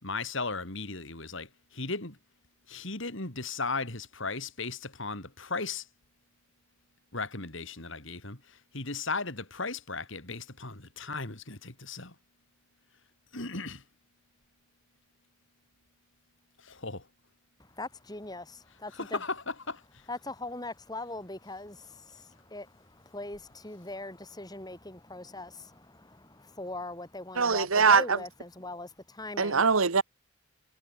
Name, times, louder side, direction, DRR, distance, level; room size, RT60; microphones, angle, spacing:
voice 1, 0.0-2.2 2.7-5.9 7.1-12.1 13.3-13.8 16.6-17.1 18.9-19.8, left 3 dB, 60° left, 3.4 m, -36 dB
voice 2, 17.8-19.2 20.1-22.7 22.9-29.6, left 2 dB, 20° left, 3.2 m, -41 dB
voice 3, 27.3-28.2 29.4-30.0, right 5 dB, 70° right, 1.2 m, -22 dB
head